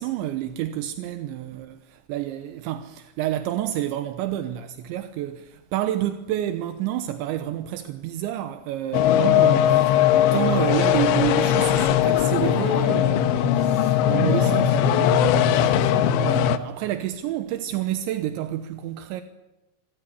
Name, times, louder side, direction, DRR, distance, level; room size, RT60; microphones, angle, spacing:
voice 1, 0.0-10.0 10.3-19.2, right 13 dB, 80° right, 3.3 m, -29 dB
sound 1, 8.9-16.6, left 10 dB, 75° left, 3.2 m, -19 dB
27.0 x 17.0 x 9.7 m
omnidirectional pair, 5.4 m